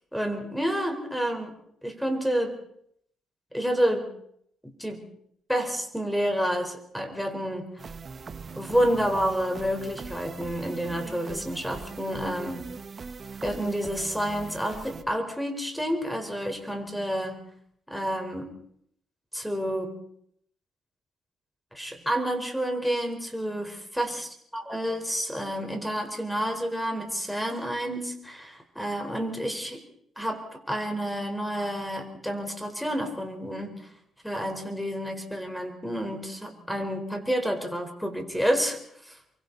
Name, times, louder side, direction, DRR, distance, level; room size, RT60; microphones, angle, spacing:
voice 1, 0.1-1.5 1.8-2.6 3.5-4.1 4.8-5.0 5.5-7.7 8.6-12.7 13.4-17.4 17.9-18.5 19.3-20.0 21.7-24.3 24.5-29.8 30.2-33.9 34.2-39.2, equal, ahead, 5 dB, 4.4 m, -29 dB
sound 1, 7.8-15.0, right 5 dB, 40° right, 1.5 m, -41 dB
28.5 x 23.5 x 4.1 m, 0.69 s
cardioid pair, 90°, 0 cm